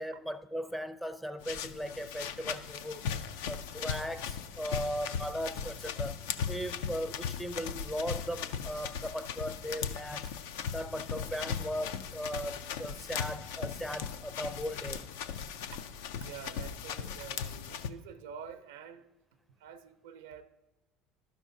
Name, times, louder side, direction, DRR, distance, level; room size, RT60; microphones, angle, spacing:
voice 1, 0.0-3.1 3.5-6.1 6.5-10.3 10.7-15.1, equal, 5° left, 0.4 m, -38 dB
sound 1, 1.4-17.9, left 7 dB, 80° left, 0.4 m, -38 dB
voice 2, 15.7-19.1 19.6-20.4, right 8 dB, 85° right, 0.5 m, -48 dB
12.5 x 5.9 x 2.7 m
supercardioid pair, 85°, 0 cm